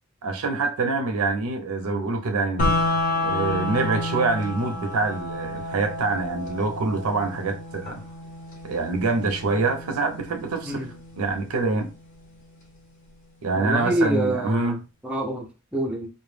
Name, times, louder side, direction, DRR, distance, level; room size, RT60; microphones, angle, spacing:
voice 1, 0.2-2.7 3.2-8.0 8.6-10.9 11.2-11.9 13.4-14.8, right 3 dB, 90° right, 0.5 m, -25 dB
sound 1, 2.6-12.6, left 2 dB, 40° left, 0.7 m, -30 dB
voice 2, 13.6-16.1, right 1 dB, 5° right, 0.4 m, -27 dB
2.1 x 2.0 x 3.2 m
head